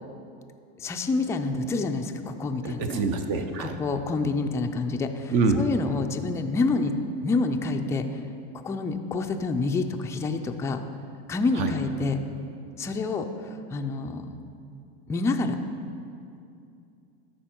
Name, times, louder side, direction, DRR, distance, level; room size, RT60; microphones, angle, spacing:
voice 1, 0.8-3.1 3.6-6.9 7.2-8.2 8.6-10.8 11.3-12.2 12.8-13.3 13.7-14.3 15.1-15.6, left 3 dB, 10° left, 5 dB, 0.3 m, -27 dB
voice 2, 2.6-3.8 5.3-5.6 11.6-11.7, right 4 dB, 55° right, 6 dB, 0.8 m, -25 dB
13.0 x 4.5 x 4.4 m, 2.5 s
supercardioid pair, 120°, 29 cm